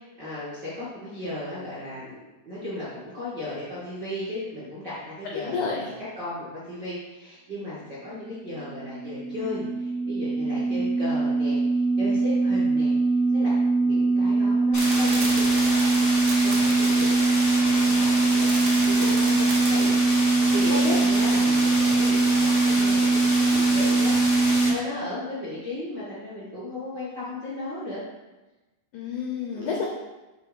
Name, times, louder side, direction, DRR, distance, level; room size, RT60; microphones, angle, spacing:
voice 1, 0.0-2.2 2.4-5.9 6.2-17.2 17.5-19.2 19.7-28.0 29.5-29.7, left 1 dB, 55° right, -9 dB, 1.1 m, -36 dB
voice 2, 5.4-5.8 10.4-10.8 19.0-19.5 20.7-21.0 28.9-29.8, left 5 dB, 90° left, -1 dB, 1.7 m, -30 dB
sound 1, 8.5-24.7, right 3 dB, 85° right, 3.0 m, -22 dB
sound 2, 14.7-24.7, left 1 dB, 55° left, 0.7 m, -29 dB
sound 3, 14.8-19.9, right 4 dB, 70° right, 1.7 m, -37 dB
6.9 x 3.8 x 5.0 m, 1.1 s
omnidirectional pair, 4.6 m